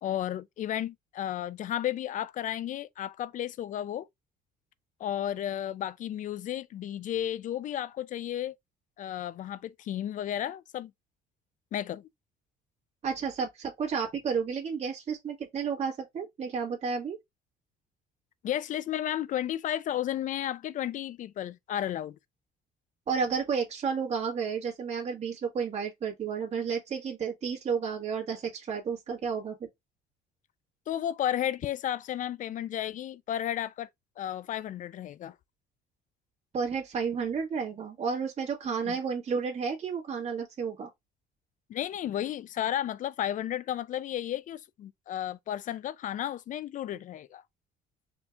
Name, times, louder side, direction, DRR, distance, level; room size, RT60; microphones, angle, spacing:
voice 1, 0.0-4.1 5.0-8.6 9.0-10.9 11.7-12.1 18.4-22.2 30.9-33.9 34.2-35.4 38.9-39.0 41.7-47.4, left 11 dB, 50° left, 0.4 m, -33 dB
voice 2, 13.0-17.2 23.1-29.7 36.5-40.9, right 6 dB, 40° right, 1.9 m, -31 dB
4.4 x 2.7 x 3.5 m
cardioid pair, 110°, 17 cm